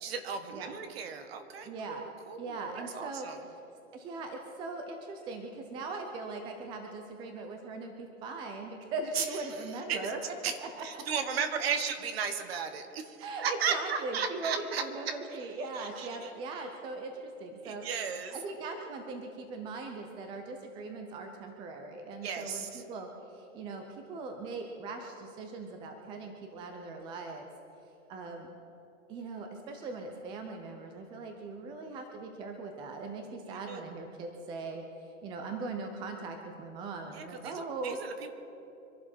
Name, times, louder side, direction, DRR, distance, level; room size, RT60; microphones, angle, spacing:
voice 1, 0.0-3.4 9.1-9.3 9.9-10.1 10.4-10.5 10.8-15.2 15.8-16.3 17.6-18.4 22.2-22.8 33.5-33.9 37.1-37.5 37.8-38.3, right 6 dB, 50° right, 8 dB, 1.7 m, -35 dB
voice 2, 1.6-2.1 2.4-3.6 3.9-10.3 10.6-11.0 13.2-17.8 18.3-23.8 24.1-27.5 28.1-28.5 29.1-34.8 35.2-38.0, right 3 dB, 10° right, 4 dB, 0.7 m, -40 dB
25.0 x 11.5 x 4.5 m, 3.0 s
hypercardioid pair, 145°, 40 cm